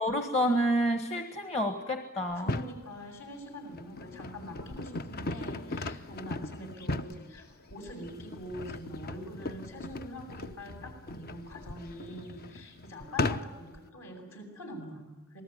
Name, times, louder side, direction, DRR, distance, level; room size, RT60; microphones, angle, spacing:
voice 1, 0.0-2.5, equal, 30° left, 8 dB, 1.5 m, -28 dB
voice 2, 2.3-15.4, left 1 dB, 65° left, 4 dB, 8.0 m, -44 dB
sound 1, 2.3-2.8 3.4-13.8, left 2 dB, 45° left, 0.9 m, -38 dB
27.5 x 19.5 x 9.5 m, 1.1 s
head